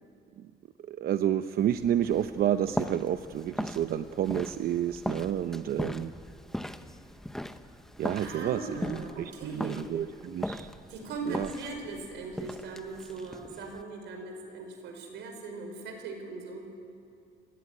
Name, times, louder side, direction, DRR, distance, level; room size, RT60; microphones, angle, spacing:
voice 1, 0.9-6.1 8.0-10.7 11.3-11.5, right 10 dB, 55° right, 10 dB, 0.7 m, -30 dB
sound 1, 1.6-13.8, left 1 dB, ahead, 0.8 m, -39 dB
voice 2, 8.2-9.8 10.9-16.7, right 3 dB, 85° right, 4 dB, 5.3 m, -39 dB
28.5 x 17.0 x 9.7 m, 2.5 s
cardioid pair, 140°, 18 cm